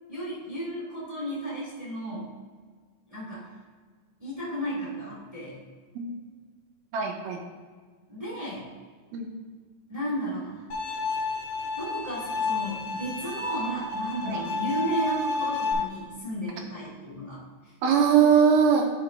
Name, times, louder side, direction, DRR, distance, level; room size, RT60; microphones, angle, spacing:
voice 1, 0.1-2.3 3.1-3.5 4.2-5.6 8.1-8.7 9.9-10.7 11.7-17.7, right 1 dB, 20° right, -7 dB, 0.8 m, -33 dB
voice 2, 6.9-7.4 9.1-9.3 14.3-14.4 17.8-18.9, right 7 dB, 80° right, 2 dB, 2.3 m, -21 dB
Bowed string instrument, 10.7-15.7, left 3 dB, 65° left, 2.0 m, -31 dB
10.5 x 4.9 x 3.2 m, 1.6 s
omnidirectional pair, 4.9 m